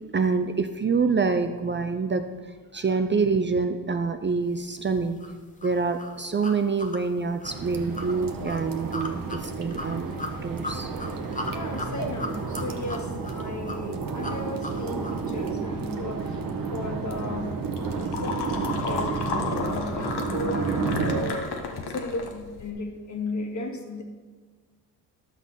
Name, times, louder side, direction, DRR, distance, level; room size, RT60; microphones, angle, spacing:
voice 1, 0.1-2.2 2.7-5.2 5.6-10.1 10.4-10.9 12.0-12.1, right 4 dB, 25° right, 7 dB, 0.7 m, -26 dB
sound 1, 5.2-15.3, left 2 dB, 20° left, 1.4 m, -38 dB
sound 2, 7.4-21.3, right 4 dB, 50° right, 1.4 m, -31 dB
voice 2, 11.5-16.4 16.7-17.5 18.0-24.0, left 2 dB, 45° left, 3 dB, 2.2 m, -35 dB
sound 3, 17.4-22.7, left 5 dB, 65° left, 1.5 m, -33 dB
12.0 x 6.0 x 5.7 m, 1.4 s
supercardioid pair, 55°, 42 cm